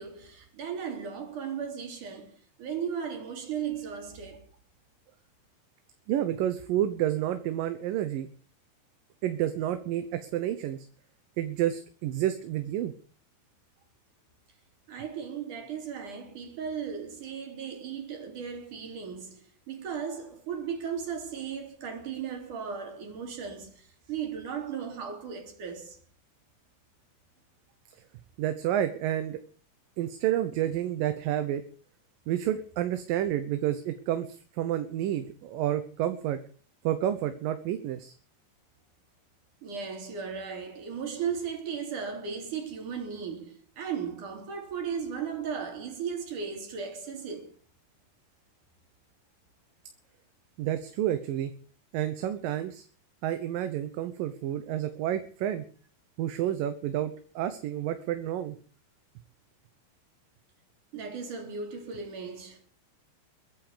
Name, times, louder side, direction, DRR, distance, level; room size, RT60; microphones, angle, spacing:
voice 1, 0.0-4.5 14.9-26.0 39.6-47.5 60.9-62.6, right 7 dB, 60° right, 4.7 m, -36 dB
voice 2, 6.1-8.3 9.2-10.8 11.4-12.9 28.4-29.4 30.0-31.6 32.3-36.4 36.8-38.1 50.6-51.5 51.9-52.8 53.2-55.6 56.2-58.6, right 11 dB, 75° right, 2.8 m, -30 dB
22.0 x 8.6 x 6.9 m
omnidirectional pair, 4.0 m